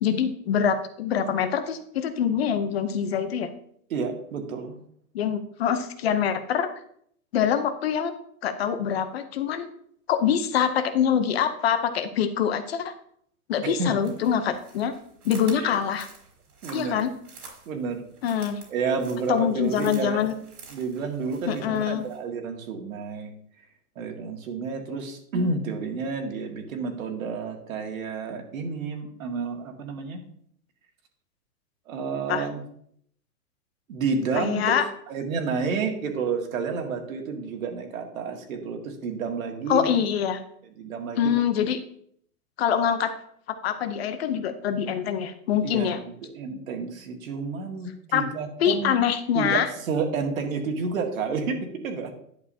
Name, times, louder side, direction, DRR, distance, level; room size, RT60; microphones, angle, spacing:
voice 1, 0.0-3.5 5.1-6.7 7.3-8.1 8.4-9.7 10.1-12.9 13.5-14.9 15.2-16.1 16.7-17.1 18.2-18.6 19.3-20.3 21.5-22.0 32.3-32.5 34.4-34.8 39.7-40.4 41.2-41.8 42.6-43.1 43.6-46.0 48.1-48.2 48.6-49.7, left 8 dB, 45° left, 10 dB, 0.7 m, -24 dB
voice 2, 3.9-4.8 13.6-13.9 15.5-15.8 16.6-17.0 17.7-18.0 18.7-20.3 20.7-23.3 24.0-30.2 31.9-32.6 33.9-34.7 35.1-39.9 40.8-41.3 45.6-49.0 49.3-52.1, right 5 dB, 65° right, 3 dB, 2.0 m, -30 dB
sound 1, 13.9-22.2, right 4 dB, 85° right, 3.6 m, -48 dB
11.0 x 7.2 x 2.8 m, 0.66 s
hypercardioid pair, 155°, 44 cm